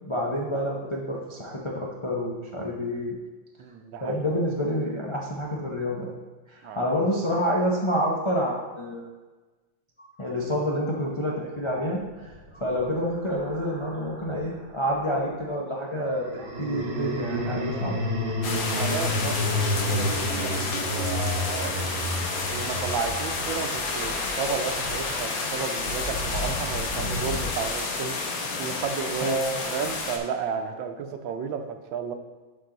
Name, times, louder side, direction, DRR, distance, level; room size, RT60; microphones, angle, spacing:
voice 1, 0.0-3.2 4.0-6.1 6.5-9.1 10.2-18.0 29.2-29.6, equal, 40° left, -3 dB, 0.4 m, -28 dB
voice 2, 3.6-4.2 6.6-6.9 18.7-22.1 22.5-28.2 28.6-29.4 29.7-32.1, right 6 dB, 75° right, 7 dB, 1.4 m, -33 dB
sound 1, 12.0-14.5 16.1-28.4, left 1 dB, 50° right, 0.8 m, -32 dB
sound 2, 18.4-30.2, left 3 dB, 70° left, 1.7 m, -30 dB
11.5 x 4.5 x 3.9 m, 1.2 s
omnidirectional pair, 2.2 m